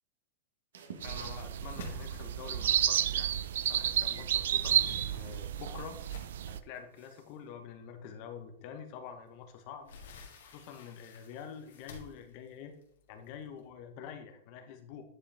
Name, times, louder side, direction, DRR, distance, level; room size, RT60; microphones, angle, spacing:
sound 1, 0.7-7.5, right 6 dB, 85° right, 1.3 m, -52 dB
voice 1, 1.0-3.4 3.6-6.0 6.5-9.9 10.4-12.7 13.1-15.0, left 7 dB, 35° left, 6 dB, 0.9 m, -47 dB
sound 2, 1.0-6.6, right 10 dB, 70° right, 0.4 m, -31 dB
sound 3, 1.7-3.9 4.2-6.6 7.2-7.3 7.8-7.9 9.3-13.6, left 4 dB, 75° left, 2.0 m, -52 dB
9.9 x 5.0 x 3.4 m, 0.69 s
supercardioid pair, 180°, 0 cm